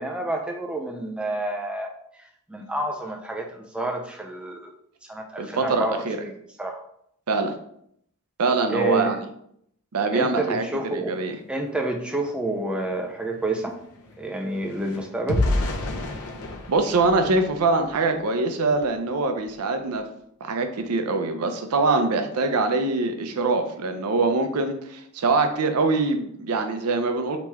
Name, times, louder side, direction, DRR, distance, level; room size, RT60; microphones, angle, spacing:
voice 1, 0.0-1.9 2.5-4.7 5.1-6.3 6.6-6.8 8.7-9.2 10.1-11.2 11.5-13.8 14.2-15.5, right 2 dB, 5° right, 2 dB, 0.4 m, -29 dB
voice 2, 5.4-6.2 7.3-7.6 8.4-9.2 9.9-11.4 16.7-20.0 20.4-27.4, right 3 dB, 85° right, 6 dB, 0.5 m, -23 dB
sound 1, 12.3-12.4 12.7-18.2 18.7-18.9 19.3-19.5, left 2 dB, 75° left, 0.7 m, -31 dB
3.0 x 3.0 x 3.5 m, 0.70 s
head